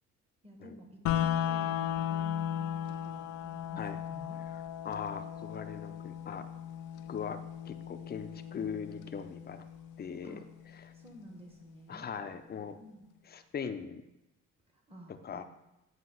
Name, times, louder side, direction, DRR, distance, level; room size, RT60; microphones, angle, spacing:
voice 1, 0.4-1.7 1.9-3.8 4.1-4.4 10.2-10.4 10.9-12.1 12.7-13.0 14.9-15.4, right 1 dB, 20° right, 2 dB, 1.4 m, -51 dB
sound 1, 1.1-11.0, left 10 dB, 85° left, 0.5 m, -36 dB
voice 2, 4.5-6.5 7.1-7.4 7.7-9.7 10.0-10.4 10.8-10.9 11.9-12.8 13.2-14.0 15.1-15.4, left 7 dB, 30° left, 9 dB, 0.5 m, -40 dB
7.6 x 2.9 x 5.5 m, 0.93 s
cardioid pair, 90°, 30 cm